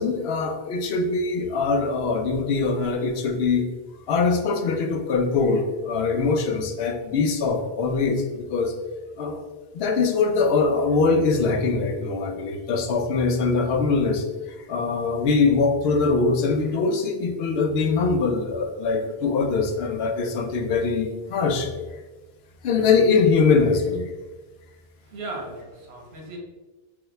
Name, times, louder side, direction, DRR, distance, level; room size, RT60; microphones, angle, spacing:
voice 1, 0.0-3.6 4.1-8.7 9.2-9.4 9.7-14.3 14.7-21.7 22.6-24.1, left 4 dB, 80° left, 4 dB, 0.8 m, -22 dB
voice 2, 25.0-26.4, right 2 dB, 85° right, 0 dB, 1.1 m, -36 dB
5.0 x 2.2 x 3.2 m, 1.2 s
omnidirectional pair, 1.0 m